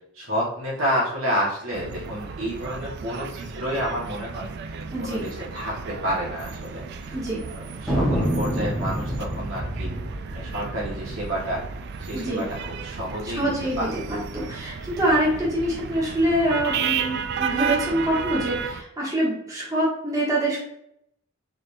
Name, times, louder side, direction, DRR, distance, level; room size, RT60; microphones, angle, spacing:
voice 1, 0.1-9.9 10.3-11.6 12.0-14.2, equal, 75° right, -5 dB, 1.6 m, -30 dB
sound 1, 1.7-18.8, right 6 dB, 55° right, 0.3 m, -33 dB
voice 2, 4.9-5.2 7.1-7.4 12.1-12.5 13.3-20.6, right 1 dB, 15° right, -6 dB, 1.3 m, -25 dB
Thunder, 7.9-12.7 12.9-13.0 13.3-13.8 14.3-15.5, equal, ahead, 0.9 m, -28 dB
4.1 x 3.4 x 2.6 m, 0.75 s
head